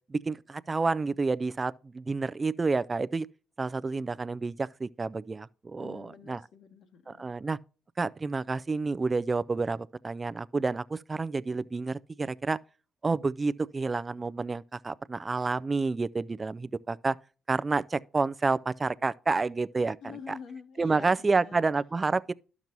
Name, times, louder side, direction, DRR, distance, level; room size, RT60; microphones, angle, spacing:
voice 1, 0.1-3.3 3.6-6.4 7.1-7.6 8.0-12.6 13.0-17.2 17.5-20.0 20.3-20.4 20.8-22.3, right 3 dB, 25° right, 0.3 m, -29 dB
voice 2, 5.8-7.3 20.0-21.7, left 6 dB, 75° left, 1.7 m, -47 dB
12.0 x 6.0 x 2.6 m
cardioid pair, 90°, 0 cm